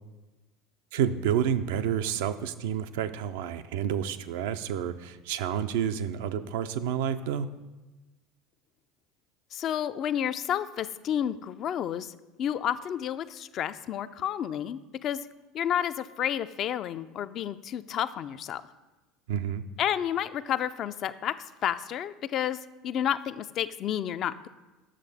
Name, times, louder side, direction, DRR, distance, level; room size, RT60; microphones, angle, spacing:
voice 1, 0.9-7.5 19.3-19.6, right 9 dB, 70° right, 10 dB, 0.4 m, -29 dB
voice 2, 9.5-12.1 12.4-15.3 15.5-18.6 19.8-21.3 21.6-24.5, left 10 dB, 50° left, 12 dB, 0.3 m, -30 dB
7.4 x 6.4 x 4.0 m, 1.1 s
hypercardioid pair, 75°, 0 cm